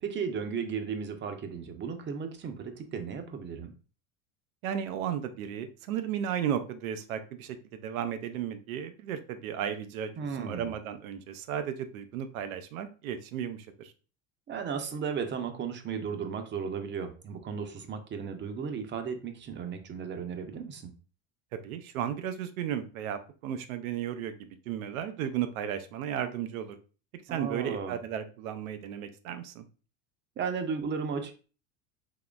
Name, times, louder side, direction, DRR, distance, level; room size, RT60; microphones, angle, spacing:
voice 1, 0.0-3.7 10.2-10.7 14.5-20.9 27.3-28.0 30.4-31.3, right 6 dB, 30° right, 7 dB, 0.6 m, -35 dB
voice 2, 4.6-13.9 21.5-26.8 27.1-29.7, right 9 dB, 90° right, 9 dB, 0.6 m, -34 dB
3.8 x 2.9 x 2.3 m, 0.36 s
supercardioid pair, 100°, 40 cm